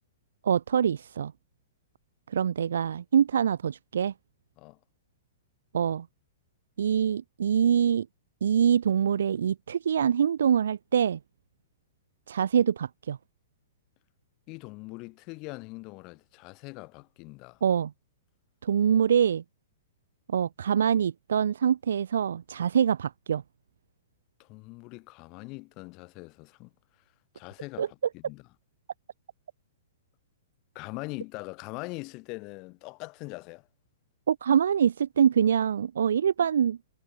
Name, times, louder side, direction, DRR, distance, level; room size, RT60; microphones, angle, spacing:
voice 1, 0.4-1.3 2.3-4.1 5.7-6.1 6.8-8.1 8.4-11.2 12.3-13.2 17.6-17.9 18.6-19.4 20.3-23.4 27.8-27.9 34.3-36.8, right 8 dB, 80° right, 1.2 m, -24 dB
voice 2, 14.5-17.6 24.4-26.7 27.3-28.4 30.7-33.7, left 26 dB, 25° left, 7.3 m, -42 dB
hypercardioid pair, 175°, 0 cm